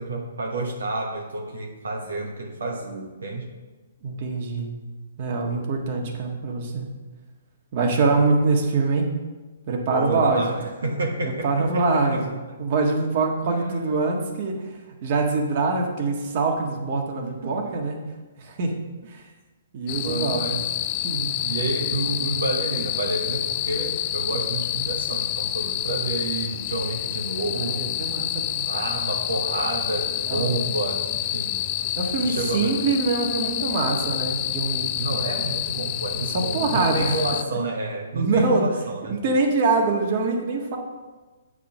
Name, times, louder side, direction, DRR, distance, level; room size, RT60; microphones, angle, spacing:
voice 1, 0.0-3.6 9.9-12.3 13.5-13.8 17.2-17.8 20.0-20.7 21.4-28.1 28.6-31.6 32.2-32.8 35.0-39.2, right 2 dB, 80° right, 1 dB, 1.2 m, -29 dB
voice 2, 4.0-4.7 5.2-6.9 7.7-9.2 9.7-10.5 11.4-12.3 12.6-18.0 18.4-18.8 19.1-19.2 19.7-20.4 21.0-21.4 27.6-28.7 30.3-30.5 32.0-34.9 36.3-37.1 38.1-38.7 39.1-40.8, right 3 dB, 45° right, 1 dB, 1.5 m, -24 dB
sound 1, 19.9-37.4, left 12 dB, 35° left, 0.3 m, -28 dB
8.3 x 5.0 x 6.0 m, 1.2 s
hypercardioid pair, 135°, 0 cm